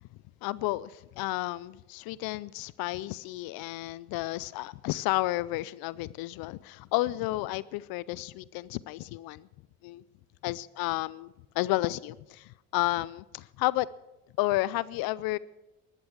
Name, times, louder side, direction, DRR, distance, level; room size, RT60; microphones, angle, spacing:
voice 1, 0.4-9.5 9.8-10.0 10.4-11.3 11.6-13.9 14.4-15.4, left 18 dB, 75° left, 0.5 m, -31 dB
13.0 x 11.5 x 7.2 m
supercardioid pair, 70°, 35 cm